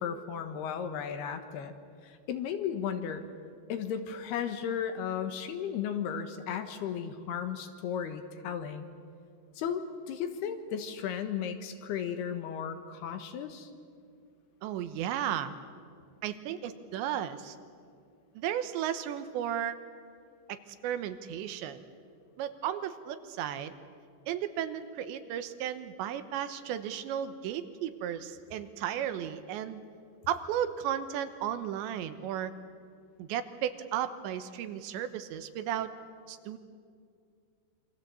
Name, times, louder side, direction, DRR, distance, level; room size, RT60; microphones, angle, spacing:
voice 1, 0.0-1.7 2.0-3.2 3.7-8.9 9.6-13.7, left 8 dB, 75° left, 7 dB, 3.1 m, -35 dB
voice 2, 14.6-15.5 16.2-17.6 18.3-19.8 20.5-21.8 22.4-23.7 24.3-29.8 30.3-32.5 33.2-35.9 36.3-36.6, right 10 dB, 90° right, 10 dB, 3.3 m, -34 dB
27.5 x 25.0 x 7.7 m, 2.3 s
omnidirectional pair, 5.1 m